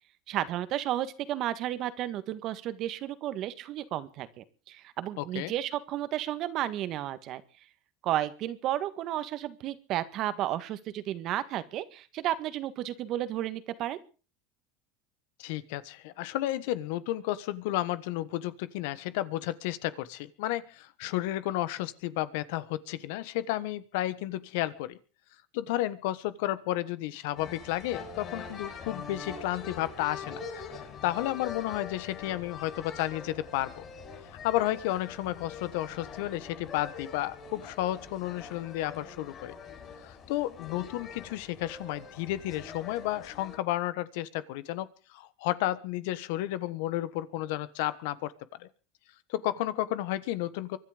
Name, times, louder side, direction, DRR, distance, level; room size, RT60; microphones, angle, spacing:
voice 1, 0.3-7.4 8.0-14.0, right 12 dB, 50° right, 13 dB, 1.7 m, -32 dB
voice 2, 5.2-5.5 15.4-25.0 25.5-33.8 34.3-39.5 40.0-44.9 45.1-48.3 48.6-48.7 49.3-50.8, left 15 dB, 75° left, 15 dB, 1.3 m, -32 dB
sound 1, 27.4-43.6, left 5 dB, 40° left, 7.0 m, -44 dB
24.0 x 11.0 x 5.1 m, 0.38 s
supercardioid pair, 110°, 0 cm